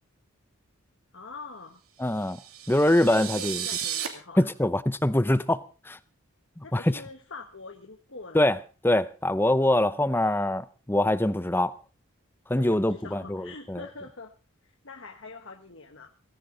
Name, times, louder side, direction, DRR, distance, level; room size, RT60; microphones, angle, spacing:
voice 1, 1.1-1.8 2.8-4.5 6.6-8.4 10.1-10.3 12.5-14.3 14.6-16.1, left 3 dB, 60° left, 1.3 m, -44 dB
voice 2, 2.0-2.4 2.7-3.6 4.4-6.0 6.6-7.0 8.3-8.6 8.8-11.7 12.5-13.8, left 1 dB, 10° left, 0.6 m, -24 dB
sound 1, 2.2-4.1, right 9 dB, 80° right, 2.7 m, -34 dB
17.0 x 16.5 x 3.9 m
head